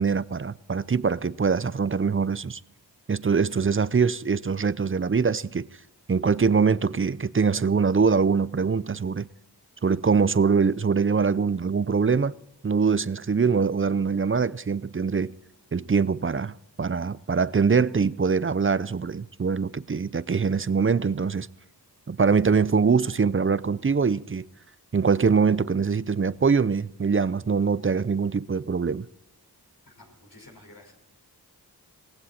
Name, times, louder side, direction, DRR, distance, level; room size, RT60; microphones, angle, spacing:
voice 1, 0.0-2.6 3.1-5.7 6.1-9.3 9.8-12.3 12.6-15.3 15.7-21.5 22.1-24.5 24.9-29.1, right 5 dB, 35° right, 0.5 m, -23 dB
voice 2, 29.8-30.9, left 2 dB, 65° left, 5.3 m, -51 dB
18.0 x 15.5 x 4.3 m
wide cardioid pair, 50°, 39 cm